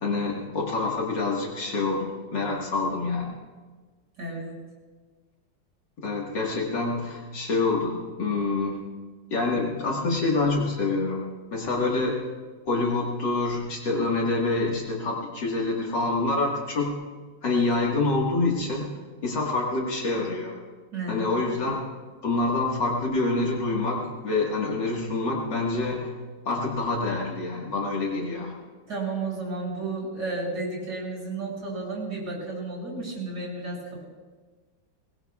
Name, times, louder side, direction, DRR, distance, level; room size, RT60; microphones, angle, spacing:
voice 1, 0.0-3.3 6.0-8.8 9.3-12.2 12.7-17.0 17.4-18.9 19.2-20.6 21.1-21.8 22.2-26.1 26.5-28.5, left 3 dB, 65° left, -2 dB, 2.4 m, -26 dB
voice 2, 4.2-4.6 20.9-21.3 28.9-34.0, right 3 dB, 60° right, -3 dB, 7.1 m, -32 dB
22.5 x 21.0 x 2.4 m, 1.4 s
omnidirectional pair, 2.1 m